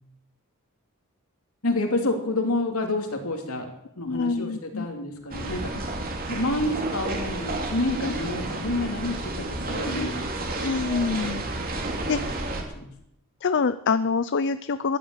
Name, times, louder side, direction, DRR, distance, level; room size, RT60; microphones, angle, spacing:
voice 1, 1.6-5.9 6.3-10.5 11.8-12.2 12.6-12.9, left 2 dB, 70° left, 4 dB, 3.0 m, -29 dB
voice 2, 4.1-4.9 8.0-8.1 9.9-10.1 10.5-11.4 12.1-12.2 13.4-15.0, left 4 dB, 55° left, 13 dB, 0.6 m, -26 dB
sound 1, 5.3-12.6, right 2 dB, 45° right, 2.8 m, -31 dB
14.5 x 11.0 x 8.0 m, 0.79 s
head